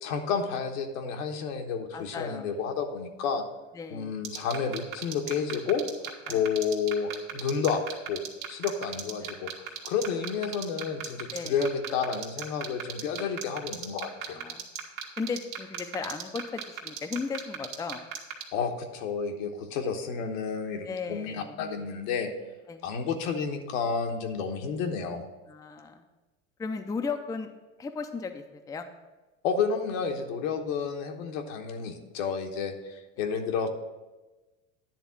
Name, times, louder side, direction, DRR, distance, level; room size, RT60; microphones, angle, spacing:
voice 1, 0.0-3.4 3.9-5.8 6.3-7.8 8.1-8.2 8.5-9.5 9.8-14.4 18.5-22.3 22.8-25.3 29.4-33.7, left 6 dB, 75° left, 4 dB, 1.3 m, -30 dB
voice 2, 1.9-2.5 3.7-4.2 6.3-6.5 9.2-9.4 11.3-11.7 14.3-14.7 15.2-18.0 20.8-21.6 22.7-22.9 25.5-26.0 26.6-27.5 27.8-28.9 33.2-33.3, left 4 dB, 10° left, 6 dB, 0.4 m, -36 dB
sound 1, 4.2-18.4, right 11 dB, 80° right, 1.6 m, -35 dB
10.5 x 3.6 x 7.1 m, 1.1 s
supercardioid pair, 110°, 39 cm